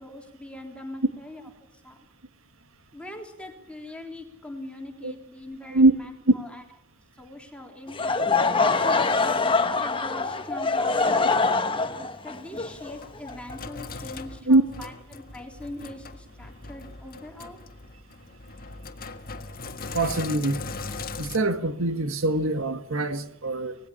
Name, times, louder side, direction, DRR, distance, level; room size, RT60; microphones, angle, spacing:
voice 1, 0.0-2.0 2.9-6.6 7.2-9.3 9.8-11.5 12.2-17.6, left 1 dB, 5° left, 3.6 m, -42 dB
Laughter / Crowd, 7.9-13.8, left 4 dB, 25° left, 1.2 m, -24 dB
Sink (filling or washing), 12.5-21.4, left 3 dB, 45° left, 1.6 m, -39 dB
voice 2, 19.9-20.7 21.2-23.8, right 2 dB, 65° right, 1.7 m, -23 dB
25.0 x 19.5 x 7.1 m
head